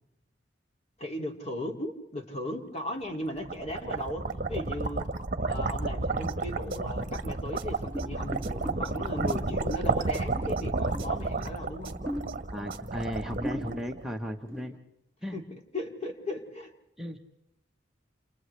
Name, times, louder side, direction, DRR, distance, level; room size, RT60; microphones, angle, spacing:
voice 1, 1.0-5.1 5.5-11.9 15.3-15.4 15.7-16.7, left 1 dB, 35° left, 3 dB, 2.4 m, -37 dB
sound 1, 3.1-14.3, right 3 dB, 45° right, 1.1 m, -32 dB
sound 2, 6.3-12.9, right 3 dB, 30° right, 1.7 m, -46 dB
sound 3, 7.9-9.7 10.3-11.5 12.0-12.7 13.1-13.2 13.4-14.0 14.5-14.8, equal, 15° left, 1.8 m, -40 dB
voice 2, 12.5-14.8 15.2-15.4 17.0-17.2, equal, 5° right, 1 dB, 0.9 m, -35 dB
28.5 x 28.5 x 3.2 m, 0.84 s
head